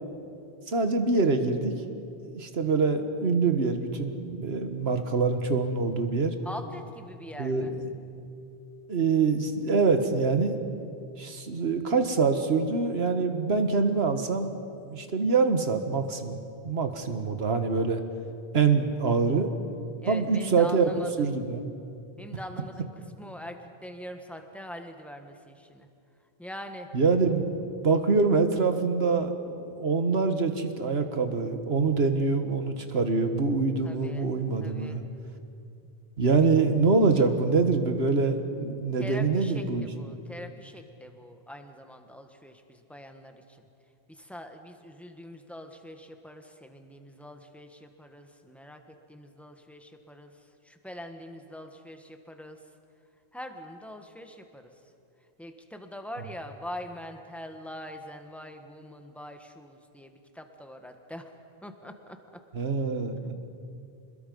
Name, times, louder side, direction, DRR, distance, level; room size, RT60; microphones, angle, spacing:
voice 1, 0.7-1.7 2.2-6.3 7.4-7.9 8.9-10.5 11.2-14.5 14.8-18.0 18.5-19.5 20.1-20.9 21.2-21.7 26.9-35.0 36.2-39.9 62.5-63.3, right 4 dB, 85° right, 7 dB, 1.7 m, -25 dB
voice 2, 6.4-7.7 20.0-21.3 22.2-25.9 26.4-26.9 33.8-34.3 34.6-35.1 36.3-36.5 37.0-37.2 39.0-43.7 44.1-52.6 53.3-54.7 55.4-61.3 61.6-62.2, left 1 dB, ahead, 5 dB, 1.4 m, -43 dB
26.5 x 21.0 x 5.4 m, 2.6 s
omnidirectional pair, 1.0 m